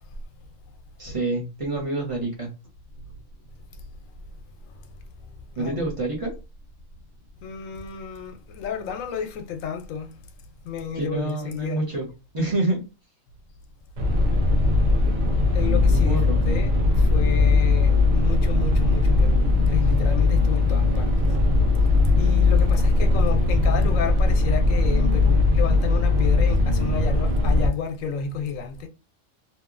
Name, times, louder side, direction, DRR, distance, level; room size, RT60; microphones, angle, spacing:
voice 1, 1.0-2.5 5.6-6.3 10.9-12.1 12.3-12.8 15.9-16.4, right 2 dB, 30° right, 0.7 m, -27 dB
voice 2, 7.4-10.1 10.6-11.9 15.5-16.7 17.0-21.4 22.2-28.9, left 7 dB, 85° left, 1.0 m, -31 dB
sound 1, 14.0-27.7, left 3 dB, 80° right, 1.1 m, -19 dB
2.8 x 2.3 x 2.4 m
omnidirectional pair, 1.3 m